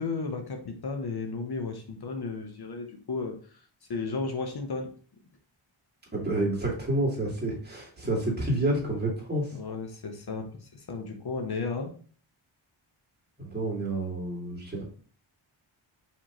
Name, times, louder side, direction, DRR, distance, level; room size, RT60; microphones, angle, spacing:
voice 1, 0.0-3.4 3.9-4.9 9.5-11.9, left 4 dB, 50° left, 4 dB, 0.9 m, -34 dB
voice 2, 6.1-9.6 13.4-14.8, right 1 dB, 20° right, -3 dB, 2.1 m, -29 dB
4.9 x 3.5 x 3.0 m, 0.43 s
cardioid pair, 80°, 49 cm